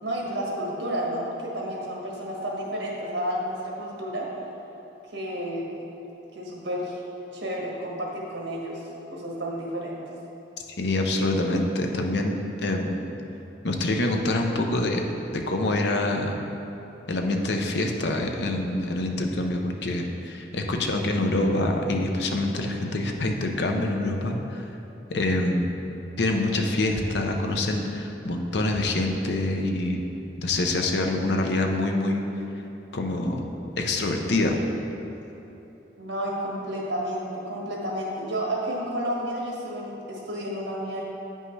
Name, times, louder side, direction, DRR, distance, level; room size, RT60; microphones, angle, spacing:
voice 1, 0.0-4.3 5.1-5.7 6.3-7.0 7.3-8.8 9.1-10.0 36.0-41.0, equal, 85° right, -3 dB, 1.4 m, -31 dB
voice 2, 10.8-13.0 13.6-15.0 15.3-16.4 17.1-24.7 25.1-25.7 26.2-30.0 30.4-32.2 32.9-33.4 33.8-34.6, left 2 dB, 70° left, 2 dB, 0.6 m, -25 dB
9.2 x 5.4 x 3.2 m, 3.0 s
head